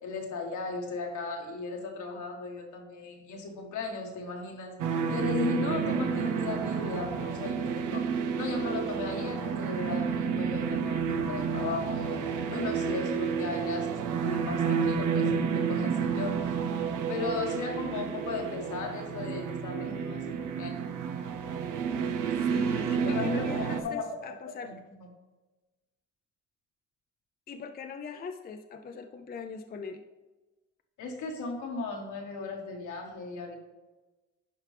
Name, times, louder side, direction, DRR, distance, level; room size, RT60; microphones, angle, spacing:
voice 1, 0.0-8.0 8.3-12.2 12.5-16.5 17.1-20.7 23.1-24.0 24.6-25.1 31.0-33.6, left 3 dB, 75° left, 1 dB, 1.5 m, -36 dB
sound 1, 4.8-23.8, right 6 dB, 90° right, 0.7 m, -30 dB
voice 2, 19.8-20.5 22.3-24.8 27.5-30.0, left 5 dB, 30° left, 6 dB, 0.5 m, -42 dB
11.0 x 4.4 x 3.4 m, 1.2 s
cardioid pair, 90°, 30 cm